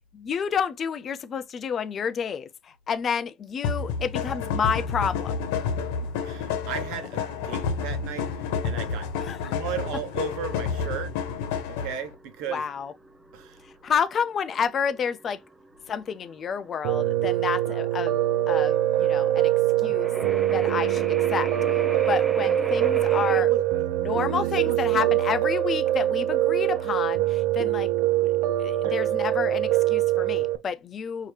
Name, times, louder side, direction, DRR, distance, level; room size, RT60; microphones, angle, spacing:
voice 1, 0.1-2.5 2.9-5.3 9.3-9.5 12.5-12.9 13.8-15.4 15.9-18.2 18.5-19.5 19.8-20.1 20.5-21.5 22.1-23.5 24.1-27.9 28.2-28.3 28.6-31.3, left 7 dB, 30° left, 0.3 m, -29 dB
sound 1, 3.6-12.1, left 5 dB, 80° left, 1.1 m, -29 dB
sound 2, 5.5-23.4, right 2 dB, 15° right, 0.6 m, -38 dB
voice 2, 6.2-9.1 9.5-11.1 11.7-12.6 13.3-13.6 23.4-23.9 24.3-25.1 28.8-29.0, right 8 dB, 60° right, 1.0 m, -36 dB
Piano, 16.8-30.6, right 13 dB, 80° right, 0.6 m, -23 dB
4.7 x 2.8 x 3.2 m
cardioid pair, 145°, 0 cm